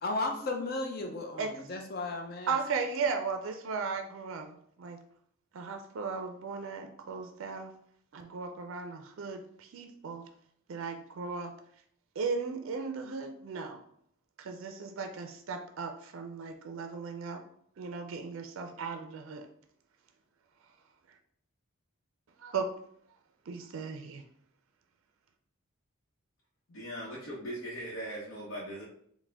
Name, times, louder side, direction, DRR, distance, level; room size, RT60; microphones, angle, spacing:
voice 1, 0.0-2.6, left 2 dB, 45° left, 3 dB, 0.5 m, -35 dB
voice 2, 2.5-5.0 5.5-7.7 8.1-10.2 10.7-11.5 12.2-13.8 14.4-17.4 17.8-19.5 22.4-22.7 23.5-24.2, right 5 dB, 65° right, 6 dB, 0.4 m, -36 dB
voice 3, 26.7-28.8, equal, 65° left, -7 dB, 0.9 m, -39 dB
4.7 x 2.1 x 3.4 m, 0.67 s
head